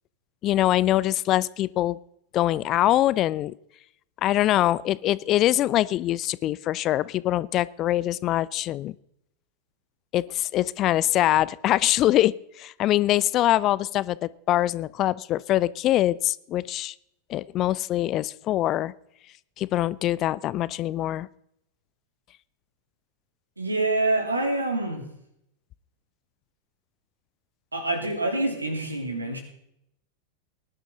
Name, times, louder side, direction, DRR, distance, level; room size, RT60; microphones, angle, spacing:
voice 1, 0.4-2.0 2.3-3.5 4.2-8.9 10.1-16.9 17.3-18.9 19.6-21.3, left 14 dB, 35° left, 20 dB, 0.4 m, -23 dB
voice 2, 23.6-25.0 27.7-29.4, right 2 dB, 80° right, 4 dB, 3.0 m, -26 dB
20.0 x 11.0 x 3.7 m, 0.76 s
figure-of-eight pair, 90°, 0 cm